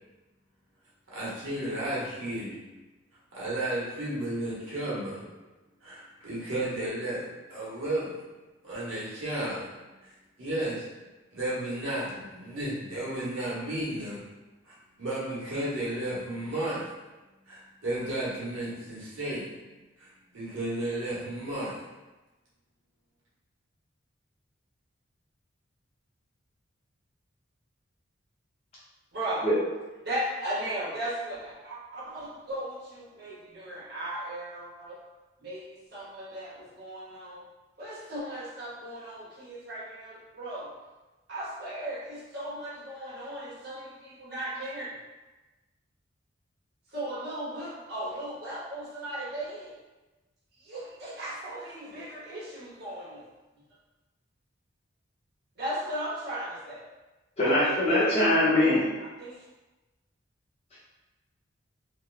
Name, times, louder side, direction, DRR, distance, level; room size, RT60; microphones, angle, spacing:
voice 1, 1.1-2.7 3.3-5.2 5.8-8.2 8.6-9.7 10.0-10.9 11.3-14.2 14.6-16.9 17.5-19.6 20.0-21.8, right 1 dB, 85° right, -8 dB, 1.0 m, -33 dB
voice 2, 29.1-29.5 30.0-35.0 35.4-37.5 37.8-40.7 41.3-45.0 46.9-49.7 50.6-53.3 55.6-56.9 57.4-58.1 59.0-59.4, right 1 dB, 55° right, -7 dB, 0.8 m, -37 dB
voice 3, 57.4-58.9, left 1 dB, 30° left, -10 dB, 0.6 m, -22 dB
2.8 x 2.0 x 2.3 m, 1.1 s
head